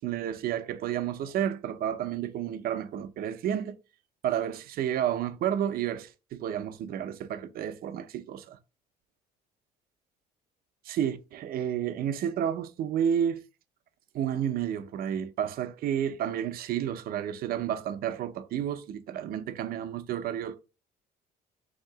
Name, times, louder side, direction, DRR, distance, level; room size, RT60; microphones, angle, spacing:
voice 1, 0.0-3.8 4.2-8.6 10.9-13.4 14.1-20.6, right 9 dB, 60° right, 0.5 m, -31 dB
3.6 x 2.8 x 4.6 m
cardioid pair, 110°, 17 cm